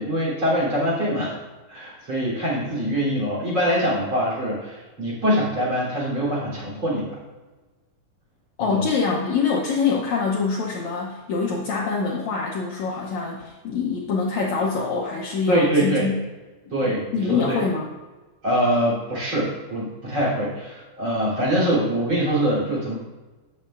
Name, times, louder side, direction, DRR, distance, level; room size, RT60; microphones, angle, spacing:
voice 1, 0.0-1.4 1.7-7.1 8.6-8.8 15.5-16.1 16.7-17.6 18.4-22.9, equal, 35° right, -4 dB, 3.7 m, -23 dB
voice 2, 8.6-16.2 16.8-17.9, left 5 dB, 90° left, -1 dB, 1.5 m, -25 dB
12.5 x 8.2 x 2.5 m, 1.2 s
omnidirectional pair, 4.4 m